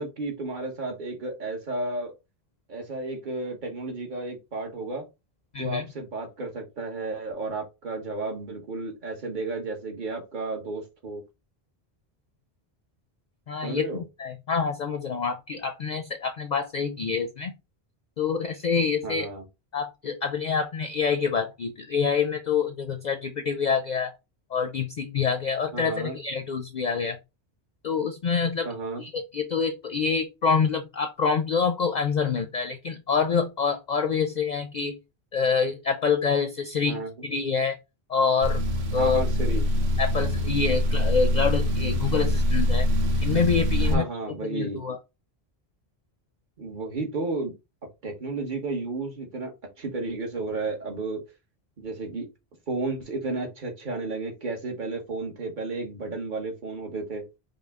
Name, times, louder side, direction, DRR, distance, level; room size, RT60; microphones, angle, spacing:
voice 1, 0.0-2.1 2.7-5.1 5.6-11.2 13.6-14.0 19.0-19.4 25.7-26.2 28.6-29.0 36.8-37.1 38.9-39.6 43.8-44.8 46.6-47.5 48.0-49.5 49.8-51.2 51.8-52.3 52.7-57.2, right 3 dB, 50° right, 1.2 m, -32 dB
voice 2, 5.5-5.9 13.5-17.5 18.2-19.3 19.7-24.1 24.5-27.2 27.8-28.7 29.0-35.0 35.3-37.8 38.1-38.6 38.9-39.2 40.0-42.9 43.2-44.0 44.4-45.0, left 5 dB, 55° left, 0.5 m, -26 dB
sound 1, 38.4-44.0, left 1 dB, 80° right, 1.1 m, -24 dB
5.3 x 2.1 x 3.5 m
omnidirectional pair, 1.0 m